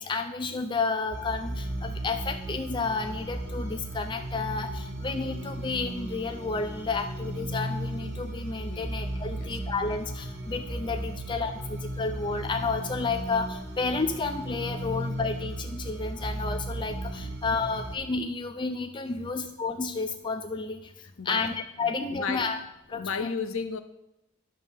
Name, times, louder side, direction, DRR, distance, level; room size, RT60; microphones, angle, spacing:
voice 1, 0.0-20.9 21.2-22.6 22.9-23.3, left 4 dB, 20° left, 6 dB, 0.4 m, -31 dB
sound 1, 1.1-18.0, right 1 dB, 55° right, 1.2 m, -35 dB
voice 2, 16.9-17.3 19.1-19.2 21.2-21.5 21.8-22.5 22.9-23.8, left 5 dB, 65° left, 9 dB, 0.7 m, -35 dB
11.0 x 3.9 x 6.1 m, 0.87 s
head